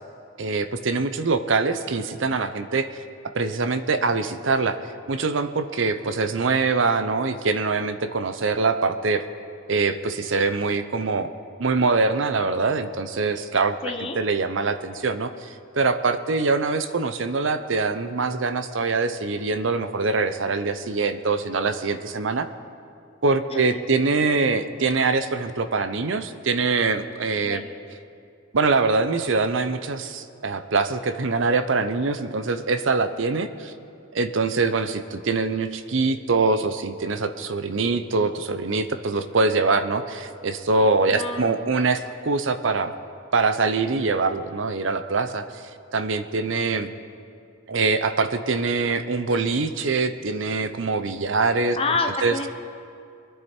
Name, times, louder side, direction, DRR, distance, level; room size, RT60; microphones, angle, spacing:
voice 1, 0.4-3.0 3.3-4.8 5.1-9.2 9.7-11.3 11.6-15.5 15.8-22.5 23.2-27.6 28.5-33.7 34.1-42.9 43.3-45.6 45.9-46.9 47.7-51.8 52.2-52.3, right 3 dB, 65° right, 11 dB, 0.7 m, -23 dB
voice 2, 13.8-14.2 23.5-23.8 27.5-27.6 41.1-41.6 51.8-52.5, left 3 dB, 30° left, 4 dB, 0.7 m, -28 dB
23.0 x 10.5 x 4.4 m, 2.5 s
head